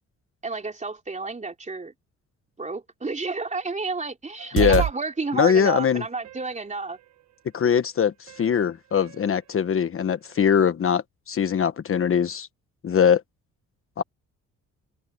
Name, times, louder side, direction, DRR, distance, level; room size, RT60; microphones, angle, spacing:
voice 1, 0.4-1.9 2.6-7.0, right 3 dB, 25° right, 3.6 m, -31 dB
sound 1, 4.4-4.9 5.6-6.5 7.6-7.7 8.3-8.6 8.9-9.2 9.6-9.7, right 11 dB, 65° right, 1.2 m, -29 dB
voice 2, 5.3-6.0 7.5-12.5 12.8-13.2 14.0-14.1, left 7 dB, 45° left, 1.2 m, -21 dB
cardioid pair, 90°, 30 cm